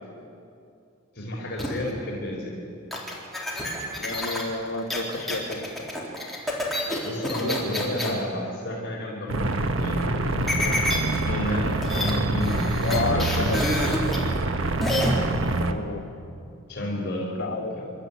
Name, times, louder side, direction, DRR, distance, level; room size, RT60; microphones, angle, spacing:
voice 1, 1.1-2.6 7.0-9.5 9.8-10.4 11.2-14.0 16.7-17.3 17.7-17.9, left 1 dB, 55° left, -3 dB, 4.1 m, -31 dB
sound 1, 1.6-1.9 2.9-8.1 10.5-11.2 11.5-11.6 11.8-12.1 12.4-14.2 14.8-15.1, left 1 dB, ahead, 3.7 m, -29 dB
voice 2, 4.0-5.7 7.5-8.2 10.6-10.8 12.8-13.6 15.7-16.0 17.3-17.7, left 3 dB, 70° left, 3 dB, 2.3 m, -31 dB
sound 2, 9.3-15.7, right 2 dB, 70° right, 1.3 m, -26 dB
28.5 x 12.5 x 9.3 m, 2.5 s
head